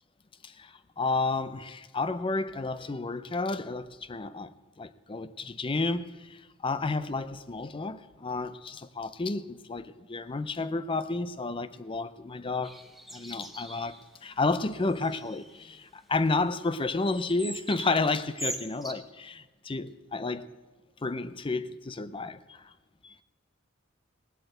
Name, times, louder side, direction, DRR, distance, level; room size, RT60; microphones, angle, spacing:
voice 1, 0.4-4.5 4.8-12.8 13.1-13.9 14.2-20.5 21.0-22.6 23.0-23.2, left 3 dB, 25° left, 0.5 m, -31 dB
sound 1, 12.6-14.1 14.4-14.6 14.9-15.6 17.1-18.9, right 1 dB, ahead, 0.9 m, -41 dB
18.0 x 8.0 x 7.9 m
head